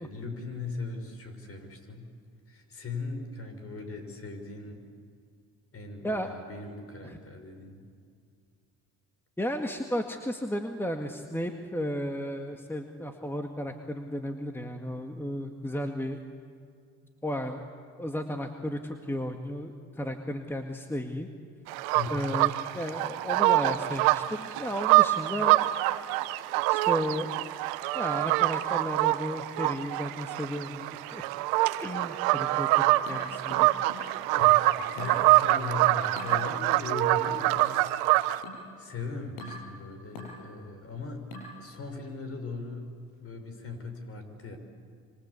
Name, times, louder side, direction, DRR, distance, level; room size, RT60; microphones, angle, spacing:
voice 1, 0.0-2.1 2.5-4.9 5.7-7.8 17.0-17.1 21.9-22.3 34.3-41.3 41.6-42.9 43.2-44.6, left 3 dB, 40° left, 6 dB, 5.9 m, -39 dB
voice 2, 9.4-16.2 17.2-17.6 18.0-21.3 22.1-25.7 26.7-27.3 27.9-31.2 31.8-33.7, equal, 5° left, 4 dB, 1.9 m, -34 dB
sound 1, 21.7-38.4, right 17 dB, 85° right, 0.9 m, -25 dB
sound 2, 33.1-34.2 35.0-35.3 36.2-36.4 37.3-37.5 38.4-38.7 39.4-39.7 40.2-40.4 41.3-41.6, left 1 dB, 85° left, 7.7 m, -42 dB
27.0 x 26.0 x 8.4 m, 2.3 s
supercardioid pair, 80°, 34 cm